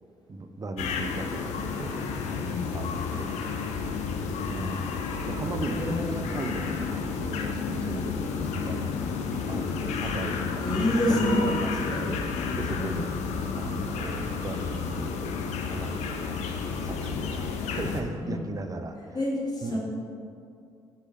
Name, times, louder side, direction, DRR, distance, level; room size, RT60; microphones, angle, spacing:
voice 1, 0.3-2.0 2.2-3.4 4.5-13.1 13.5-15.3 15.7-16.5 16.8-19.2 19.6-19.8, right 2 dB, 25° right, 6 dB, 0.5 m, -37 dB
sound 1, 0.8-18.0, left 5 dB, 55° left, 0.5 m, -31 dB
voice 2, 5.8-6.3 10.6-12.0 12.8-13.0 18.2-18.5 19.1-19.8, left 1 dB, 30° left, -3 dB, 1.2 m, -28 dB
6.2 x 3.3 x 5.4 m, 2.5 s
figure-of-eight pair, 45°, 14 cm